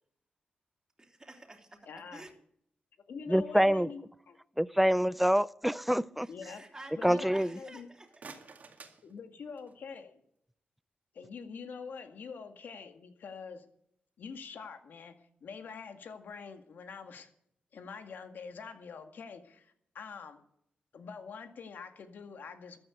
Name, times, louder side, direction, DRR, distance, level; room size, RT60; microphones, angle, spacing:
voice 1, 1.0-1.8 2.1-2.3 6.2-8.4, right 2 dB, 20° right, 2 dB, 3.2 m, -49 dB
voice 2, 1.8-2.2 3.1-4.4 6.3-6.7 7.0-7.9 9.0-10.2 11.1-13.6 14.2-15.1 15.4-17.3 17.7-20.4 20.9-22.8, left 5 dB, 75° left, 6 dB, 2.0 m, -45 dB
voice 3, 3.3-3.9 4.6-6.3 7.0-7.5, equal, 5° right, 19 dB, 0.5 m, -26 dB
sound 1, 7.8-9.9, right 4 dB, 55° right, 2.2 m, -52 dB
13.5 x 9.0 x 8.0 m, 0.71 s
cardioid pair, 80°, 3 cm